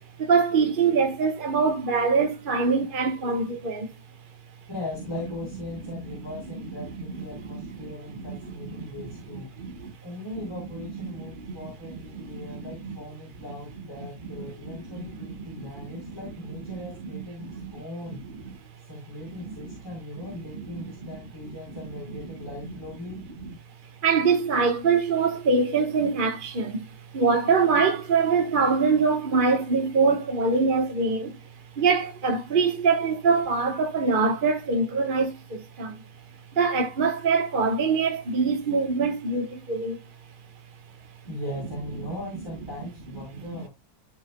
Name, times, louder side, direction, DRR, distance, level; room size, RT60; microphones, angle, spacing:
voice 1, 0.2-3.9 7.3-8.4 8.8-8.9 9.6-9.8 11.0-11.2 12.1-13.0 14.4-15.1 15.6-16.0 17.4-17.7 19.4-19.5 24.0-31.4 31.8-36.0 36.5-40.0, right 4 dB, 30° right, 1.1 m, -24 dB
voice 2, 4.7-9.6 10.0-18.3 18.8-23.3 41.3-43.7, left 1 dB, 10° left, 4.6 m, -39 dB
14.5 x 5.8 x 2.2 m
omnidirectional pair, 2.1 m